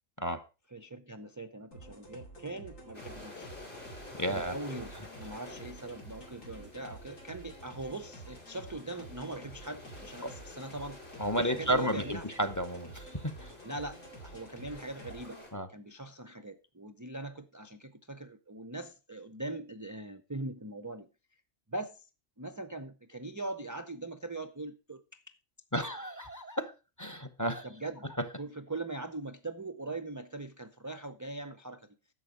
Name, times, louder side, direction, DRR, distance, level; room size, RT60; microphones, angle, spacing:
voice 1, 0.7-3.5 4.3-11.0 11.3-12.3 13.6-15.4 15.7-21.1 21.7-22.1 22.4-25.2 27.6-28.1 28.4-32.0, right 2 dB, 30° right, 0.3 m, -41 dB
sound 1, 1.7-15.4, right 2 dB, 85° left, 3.0 m, -50 dB
sound 2, 2.9-15.5, left 2 dB, 65° left, 4.3 m, -50 dB
voice 2, 4.2-4.6 11.2-13.5 15.5-15.7 25.7-26.7 27.0-27.6 28.2-28.3, right 1 dB, 15° left, 0.7 m, -32 dB
11.0 x 7.1 x 5.0 m
omnidirectional pair, 1.3 m